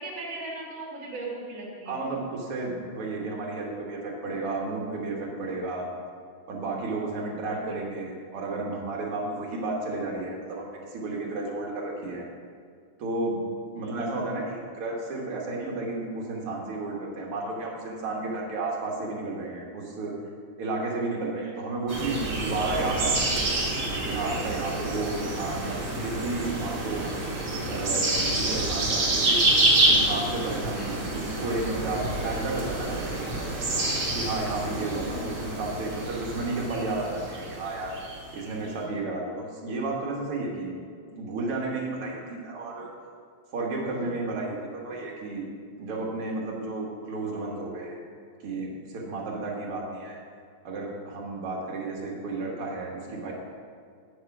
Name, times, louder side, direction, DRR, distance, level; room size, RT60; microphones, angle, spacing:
voice 1, 0.0-2.0 7.5-7.8 13.8-14.1 21.3-21.5 34.6-35.3, right 2 dB, 35° right, -4 dB, 1.9 m, -38 dB
voice 2, 1.9-5.9 6.5-12.2 13.0-13.4 13.7-20.2 20.6-23.5 24.0-27.1 27.7-29.4 29.9-33.2 34.1-37.9 38.3-40.8 41.1-42.9 43.5-45.5 45.8-48.0 48.4-50.2 50.6-53.3, right 2 dB, 85° right, -1 dB, 2.3 m, -32 dB
sound 1, 21.9-38.7, right 2 dB, 60° right, 2.0 m, -28 dB
8.8 x 4.9 x 5.9 m, 2.2 s
omnidirectional pair, 2.4 m